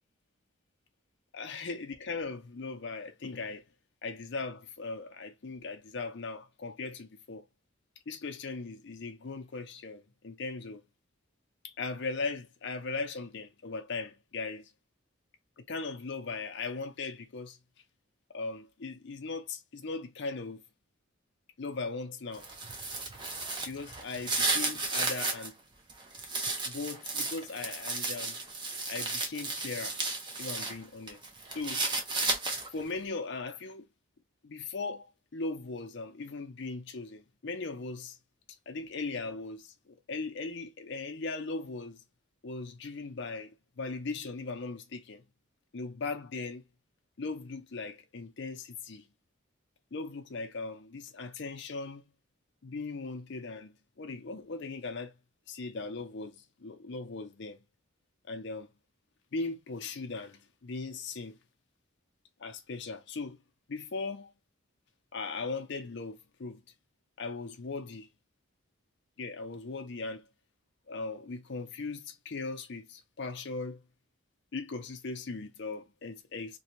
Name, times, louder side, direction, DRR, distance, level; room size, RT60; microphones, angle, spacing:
voice 1, 1.3-3.6 4.0-7.5 8.1-10.8 11.6-14.7 15.6-17.6 18.3-20.6 21.6-22.5 23.7-25.5 26.6-28.4 28.9-30.0 30.4-31.2 31.5-31.8 32.7-33.9 34.4-38.2 38.7-42.0 42.4-45.2 45.7-46.6 47.2-49.1 49.9-52.0 52.6-55.1 55.5-57.6 58.3-58.7 59.3-61.4 62.4-63.4 63.7-64.3 65.1-66.6 67.2-68.1 69.2-70.3 70.9-73.8 74.5-76.6, left 3 dB, 55° left, 0.5 m, -38 dB
sound 1, 22.3-25.5 25.9-30.8 31.1-32.8, right 3 dB, 20° right, 0.5 m, -33 dB
2.6 x 2.3 x 2.9 m
head